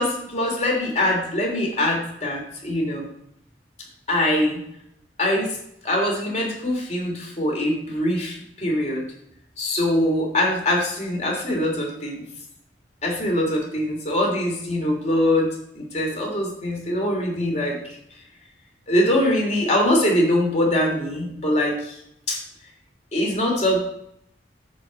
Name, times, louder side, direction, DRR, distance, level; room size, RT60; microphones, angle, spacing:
voice 1, 0.0-3.1 4.1-4.7 5.2-5.6 5.8-9.0 9.6-12.2 13.0-17.8 18.9-22.0 22.3-22.4 23.1-23.8, left 1 dB, 40° left, -1 dB, 3.1 m, -23 dB
9.8 x 4.8 x 7.5 m, 0.75 s
head